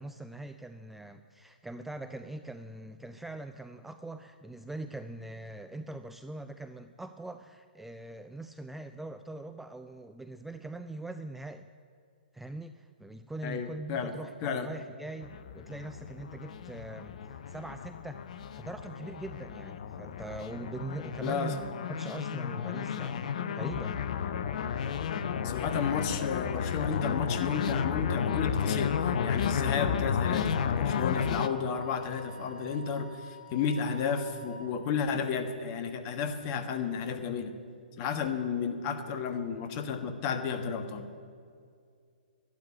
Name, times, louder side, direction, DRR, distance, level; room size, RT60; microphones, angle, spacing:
voice 1, 0.0-11.7 12.3-18.2 18.5-21.6 21.9-23.9, right 2 dB, 5° right, 8 dB, 0.3 m, -42 dB
voice 2, 13.4-14.1 14.4-14.7 21.2-21.5 25.4-37.5 38.0-41.1, left 6 dB, 30° left, 8 dB, 1.3 m, -32 dB
sound 1, 15.2-31.5, left 7 dB, 50° left, 0.7 m, -32 dB
Wind instrument woodwind instrument, 30.6-34.6, left 1 dB, 85° right, 3.5 m, -49 dB
12.0 x 10.5 x 9.0 m, 2.2 s
figure-of-eight pair, 120°, 5 cm